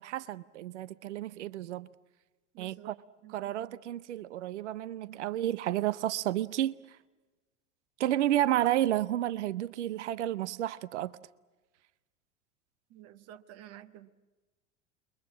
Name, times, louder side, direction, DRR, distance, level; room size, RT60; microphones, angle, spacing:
voice 1, 0.0-1.9 2.6-2.9 3.3-7.0 8.0-11.1, right 13 dB, 65° right, 0.7 m, -31 dB
voice 2, 2.5-3.8 12.9-14.1, right 11 dB, 40° right, 1.2 m, -51 dB
28.5 x 23.0 x 7.4 m
figure-of-eight pair, 80°, 38 cm